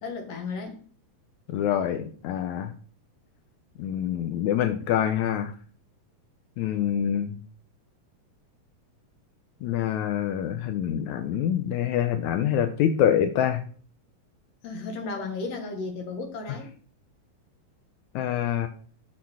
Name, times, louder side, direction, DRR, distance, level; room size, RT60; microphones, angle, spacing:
voice 1, 0.0-0.8 14.6-16.7, left 3 dB, 55° left, 3 dB, 2.3 m, -34 dB
voice 2, 1.5-2.7 3.8-5.5 6.6-7.3 9.6-13.6 18.1-18.7, left 10 dB, 80° left, 7 dB, 1.7 m, -25 dB
6.6 x 6.3 x 5.7 m, 0.43 s
omnidirectional pair, 4.1 m